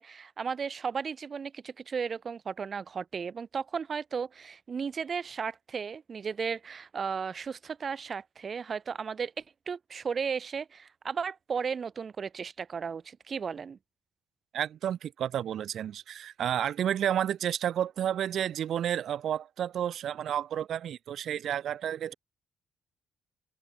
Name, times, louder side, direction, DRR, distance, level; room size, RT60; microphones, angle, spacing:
voice 1, 0.0-13.8, right 6 dB, 45° right, 4.4 m, -35 dB
voice 2, 14.5-22.1, right 10 dB, 65° right, 5.3 m, -31 dB
open air
cardioid pair, 90°, 0 cm